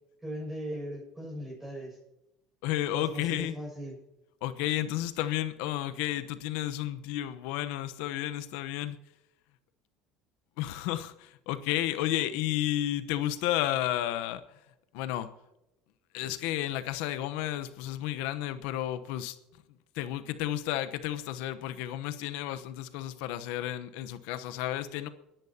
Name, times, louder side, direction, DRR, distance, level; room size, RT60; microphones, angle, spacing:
voice 1, 0.2-2.0 2.9-4.0, equal, 10° right, -2 dB, 6.3 m, -38 dB
voice 2, 2.6-3.5 4.4-9.0 10.6-14.4 14.9-15.3 16.1-19.4 19.9-25.1, left 13 dB, 75° left, 11 dB, 1.0 m, -32 dB
28.5 x 10.5 x 2.9 m, 0.92 s
supercardioid pair, 90°, 2 cm